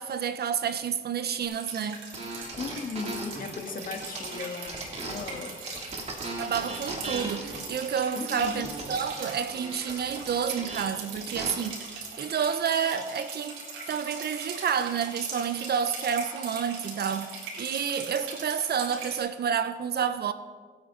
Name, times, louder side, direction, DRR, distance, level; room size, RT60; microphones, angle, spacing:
voice 1, 0.0-2.0 6.4-11.8 12.2-13.6 13.9-20.3, right 7 dB, 55° right, 0.9 m, -29 dB
sound 1, 1.4-19.2, right 4 dB, 85° right, 3.6 m, -40 dB
sound 2, 2.1-5.4 5.7-11.5, right 2 dB, 30° right, 3.0 m, -38 dB
voice 2, 2.6-6.0 8.1-8.7, left 4 dB, 45° left, 1.8 m, -37 dB
26.0 x 9.0 x 4.0 m
cardioid pair, 90°, 20 cm